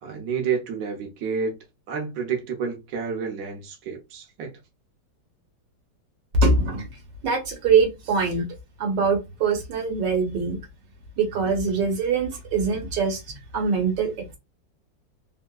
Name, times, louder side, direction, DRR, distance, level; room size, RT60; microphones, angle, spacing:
voice 1, 0.0-1.5 1.9-4.5, right 6 dB, 70° right, 1.3 m, -29 dB
voice 2, 6.4-6.9 7.2-8.4 8.8-10.6 11.2-14.1, right 4 dB, 85° right, 1.6 m, -23 dB
3.4 x 2.7 x 2.2 m
omnidirectional pair, 1.9 m